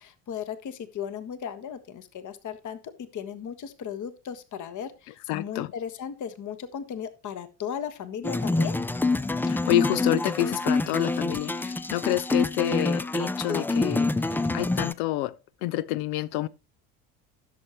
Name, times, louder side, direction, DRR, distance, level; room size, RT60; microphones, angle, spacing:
voice 1, 0.0-8.8, left 8 dB, 40° left, 1.3 m, -36 dB
voice 2, 5.3-5.7 9.4-15.3 15.6-16.5, left 16 dB, 65° left, 0.7 m, -28 dB
sound 1, 8.2-14.9, left 2 dB, 5° left, 0.4 m, -26 dB
16.0 x 6.6 x 3.0 m
hypercardioid pair, 65°, 45 cm